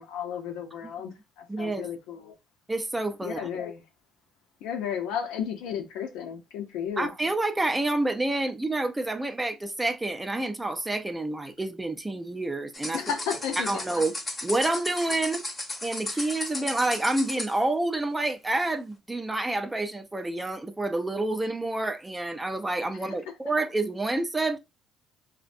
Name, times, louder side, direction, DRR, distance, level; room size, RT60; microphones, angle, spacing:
voice 1, 0.0-2.3 3.2-3.8 4.6-7.1 12.9-14.0 16.1-16.2, left 8 dB, 85° left, 0.6 m, -33 dB
voice 2, 1.5-1.9 2.7-3.5 7.0-13.0 13.6-14.1 14.4-15.4 15.8-24.6, right 2 dB, 15° right, 0.4 m, -28 dB
sound 1, 12.7-17.6, left 2 dB, 25° left, 0.7 m, -35 dB
2.5 x 2.1 x 2.5 m
cardioid pair, 100°, 0 cm